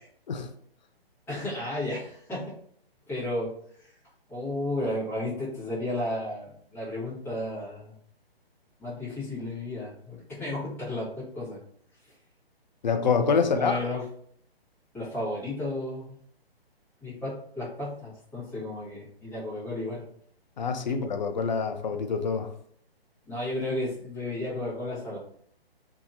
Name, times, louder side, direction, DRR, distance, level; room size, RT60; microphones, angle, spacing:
voice 1, 1.3-2.6 3.1-3.9 4.3-7.9 8.8-11.6 13.5-14.0 14.9-16.1 17.0-20.0 23.3-25.2, left 1 dB, 5° left, -11 dB, 1.4 m, -33 dB
voice 2, 12.8-13.8 20.6-22.5, left 5 dB, 45° left, 7 dB, 0.4 m, -26 dB
2.8 x 2.8 x 2.6 m, 0.63 s
figure-of-eight pair, 130°, 31 cm